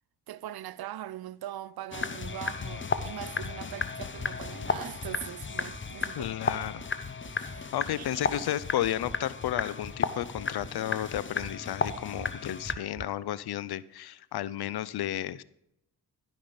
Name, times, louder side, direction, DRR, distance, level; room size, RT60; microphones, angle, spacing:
voice 1, 0.3-6.3 7.4-8.1, right 12 dB, 70° right, 0.5 m, -41 dB
sound 1, 1.9-12.7, left 5 dB, 30° left, 0.9 m, -34 dB
sound 2, 2.0-2.3 2.7-3.1 3.4-3.8 4.2-4.6 4.9-5.4 5.7-6.1 6.5-6.9 7.2-7.7 8.0-8.4 8.8-9.2 9.5-10.0 10.3-10.7 11.1-11.5 11.9-12.3 12.7-13.1, right 5 dB, 20° right, 0.4 m, -47 dB
voice 2, 6.1-6.9 7.7-15.4, left 12 dB, 75° left, 0.6 m, -33 dB
12.5 x 5.7 x 5.1 m
cardioid pair, 60°, 39 cm